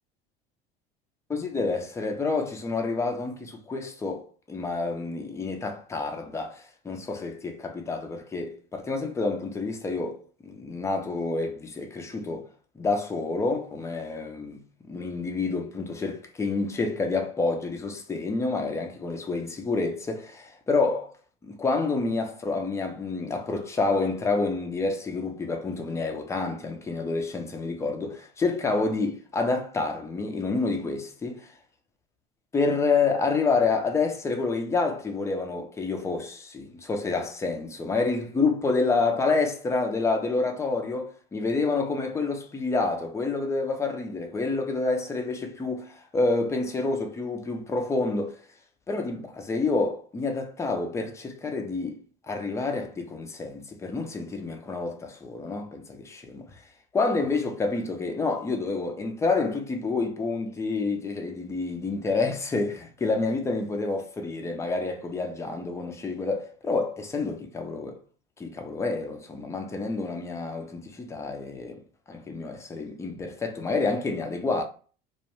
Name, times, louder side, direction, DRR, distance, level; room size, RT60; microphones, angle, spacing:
voice 1, 1.3-12.5 12.8-21.1 21.4-31.5 32.5-48.4 48.9-56.6 56.9-68.0 68.4-71.8 72.1-74.6, left 3 dB, 10° left, 0.4 m, -28 dB
2.3 x 2.1 x 2.9 m
hypercardioid pair, 75°, 29 cm